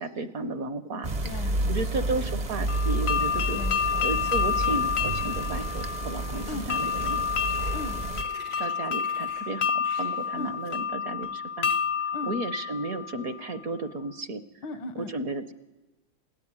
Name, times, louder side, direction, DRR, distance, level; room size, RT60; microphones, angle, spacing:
voice 1, 0.0-1.1 1.7-3.6 4.0-7.2 8.6-11.7 12.2-14.4 15.0-15.5, right 2 dB, 55° right, 10 dB, 1.1 m, -33 dB
sound 1, 1.0-8.2, right 2 dB, 35° right, 0.6 m, -30 dB
voice 2, 1.2-2.1 3.5-4.1 6.5-6.7 7.7-8.0 10.4-10.5 12.1-12.3 14.6-15.1, left 3 dB, 75° left, 12 dB, 1.7 m, -38 dB
sound 2, 2.7-13.5, left 7 dB, 50° left, 0.8 m, -29 dB
sound 3, 5.8-5.9 6.2-10.8, right 1 dB, 80° right, 5.2 m, -50 dB
21.0 x 17.0 x 9.6 m, 1.1 s
omnidirectional pair, 2.2 m